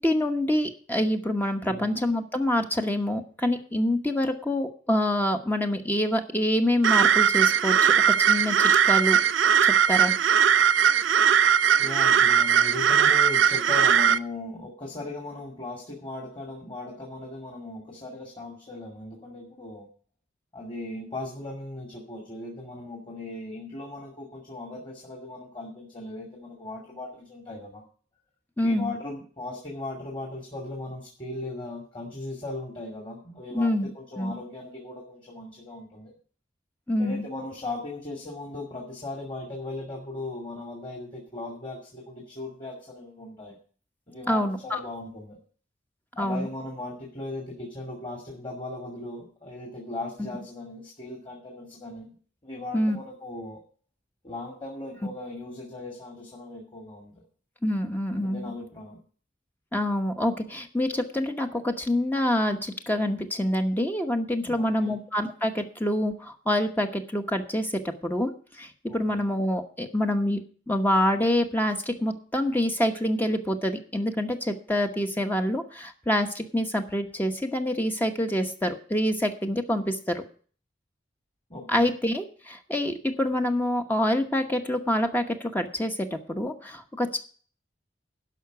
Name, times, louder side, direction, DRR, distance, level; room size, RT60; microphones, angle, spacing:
voice 1, 0.0-9.2 9.6-10.1 28.6-29.0 33.5-33.9 34.2-34.3 36.9-37.2 44.3-44.8 46.2-46.5 52.7-53.0 57.6-58.5 59.7-70.4 70.7-80.2 81.7-87.2, left 1 dB, 10° left, 5 dB, 1.0 m, -26 dB
sound 1, 6.8-14.2, right 8 dB, 90° right, 0.5 m, -20 dB
voice 2, 11.8-19.9 20.5-27.8 28.6-36.1 37.0-43.6 44.1-45.4 46.2-52.1 52.4-53.6 54.2-57.2 58.2-59.0 64.3-65.0 68.9-69.3 81.5-81.9, left 2 dB, 25° left, -1 dB, 2.4 m, -38 dB
11.5 x 5.7 x 8.2 m, 0.43 s
head